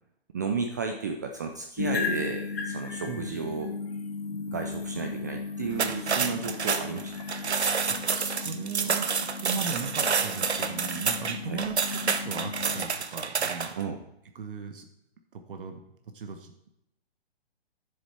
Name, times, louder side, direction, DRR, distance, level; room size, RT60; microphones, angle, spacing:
voice 1, 0.3-3.7 4.5-7.1 11.4-11.6 13.8-14.0, right 5 dB, 20° right, 4 dB, 0.3 m, -33 dB
sound 1, 1.8-12.9, left 4 dB, 70° left, 2.5 m, -36 dB
voice 2, 3.1-3.4 8.1-13.8 14.3-14.8 15.3-15.8 16.1-16.5, right 5 dB, 55° right, 6 dB, 1.3 m, -37 dB
sound 2, 5.7-13.8, right 5 dB, 85° right, 0.9 m, -29 dB
10.0 x 7.2 x 4.4 m, 0.80 s
figure-of-eight pair, 130°, 32 cm